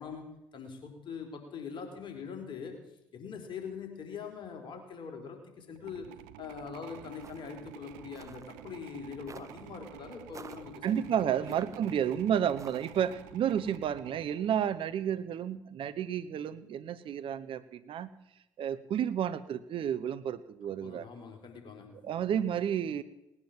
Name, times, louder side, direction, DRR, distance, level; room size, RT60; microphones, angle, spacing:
voice 1, 0.0-2.8 3.1-6.1 6.4-11.6 20.8-22.1, left 6 dB, 55° left, 3 dB, 4.2 m, -43 dB
sound 1, 5.7-15.1, right 14 dB, 85° right, 0.5 m, -50 dB
sound 2, 7.2-7.6 8.1-8.5 9.3-9.6 10.3-10.7 11.5-12.0 12.6-13.1, right 5 dB, 35° right, 0.8 m, -49 dB
voice 2, 10.8-18.1 18.6-21.1 22.0-23.0, right 9 dB, 60° right, 14 dB, 0.9 m, -31 dB
19.0 x 9.7 x 7.4 m, 0.90 s
hypercardioid pair, 50°, 10 cm